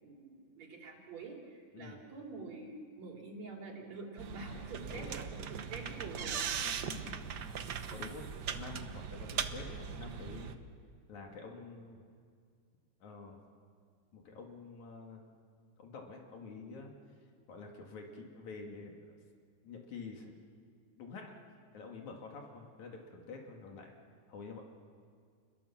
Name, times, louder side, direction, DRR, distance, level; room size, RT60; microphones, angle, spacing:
voice 1, 0.0-6.5, right 3 dB, 65° right, 0 dB, 4.6 m, -46 dB
sound 1, 4.2-10.6, right 7 dB, 85° right, 0.9 m, -40 dB
voice 2, 6.8-7.4 7.9-8.3 8.5-10.6 11.1-12.0 13.0-13.4 14.1-15.2 15.8-16.9 17.2-19.2 19.6-20.3 21.0-21.3 21.7-24.0 24.3-24.6, left 4 dB, 75° left, 1 dB, 3.5 m, -48 dB
30.0 x 22.0 x 7.2 m, 2.1 s
omnidirectional pair, 3.4 m